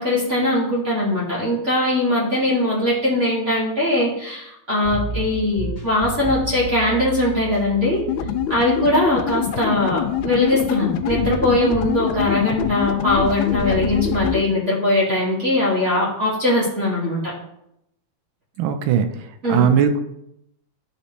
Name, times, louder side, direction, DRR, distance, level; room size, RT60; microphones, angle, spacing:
voice 1, 0.0-8.0 8.5-17.3 19.4-19.7, left 1 dB, 35° right, -6 dB, 2.3 m, -21 dB
sound 1, 4.8-14.3, right 2 dB, 10° left, 2.4 m, -32 dB
sound 2, 8.1-14.4, left 12 dB, 75° left, 1.2 m, -25 dB
voice 2, 18.6-19.1 19.5-20.0, right 8 dB, 70° right, 8 dB, 1.5 m, -18 dB
10.5 x 5.9 x 3.2 m, 0.80 s
omnidirectional pair, 2.4 m